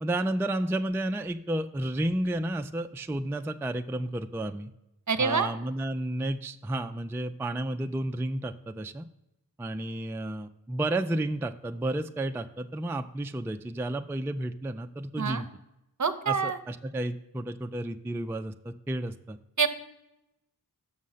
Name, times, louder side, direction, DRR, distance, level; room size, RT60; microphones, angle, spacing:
voice 1, 0.0-4.7 5.2-9.0 9.6-15.5 16.3-19.4, right 1 dB, 5° right, 8 dB, 0.3 m, -32 dB
voice 2, 5.1-5.5 15.2-15.4 16.0-16.6 19.6-19.7, right 5 dB, 50° right, 11 dB, 0.7 m, -26 dB
6.4 x 6.3 x 5.6 m, 0.89 s
wide cardioid pair, 55°, 37 cm